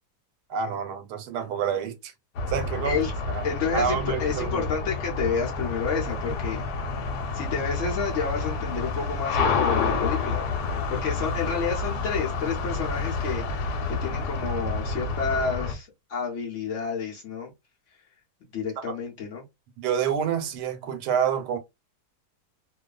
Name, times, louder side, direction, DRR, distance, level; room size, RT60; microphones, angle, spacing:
voice 1, 0.5-2.1 2.5-3.0 3.3-3.4 3.7-4.7 18.8-19.0 19.8-21.6, right 7 dB, 85° right, 1.2 m, -28 dB
sound 1, 2.3-15.7, left 4 dB, 85° left, 1.2 m, -29 dB
voice 2, 3.4-6.6 7.3-10.4 10.9-17.5 18.5-19.4, left 5 dB, 60° left, 0.8 m, -30 dB
2.6 x 2.3 x 2.2 m
omnidirectional pair, 1.8 m